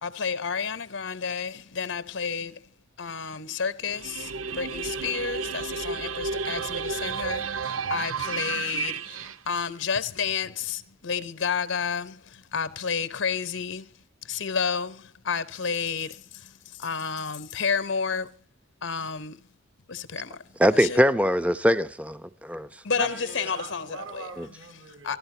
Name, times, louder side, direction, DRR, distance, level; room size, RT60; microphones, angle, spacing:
voice 1, 0.0-2.5 3.0-9.2 9.5-12.2 12.5-13.8 14.3-16.2 16.8-18.3 18.8-19.4 19.9-20.3 20.8-21.0 22.8-23.8 25.0-25.2, left 6 dB, 70° left, 0.9 m, -30 dB
sound 1, 3.8-9.4, right 5 dB, 90° right, 0.7 m, -32 dB
voice 2, 20.6-22.7 23.0-23.1 24.4-24.5, equal, 5° right, 0.8 m, -22 dB
voice 3, 23.0-25.2, right 4 dB, 70° right, 7.2 m, -43 dB
28.0 x 12.0 x 2.9 m
head